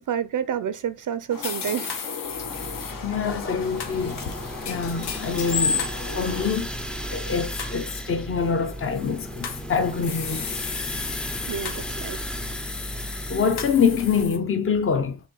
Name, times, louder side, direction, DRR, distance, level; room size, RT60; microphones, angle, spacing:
voice 1, 0.0-2.0 11.5-12.2, right 9 dB, 55° right, 0.5 m, -29 dB
sound 1, 1.3-6.5, left 5 dB, 60° left, 1.1 m, -32 dB
sound 2, 1.4-2.9 3.8-6.0 6.4-6.9 7.6-8.1 8.9-9.6 10.0-14.4, left 6 dB, 85° left, 1.2 m, -35 dB
sound 3, 2.3-14.2, equal, ahead, 0.5 m, -35 dB
voice 2, 2.9-4.2 4.6-6.7 7.1-10.5 13.3-15.2, left 6 dB, 35° left, 0.8 m, -25 dB
6.4 x 3.6 x 5.3 m
wide cardioid pair, 135°, 39 cm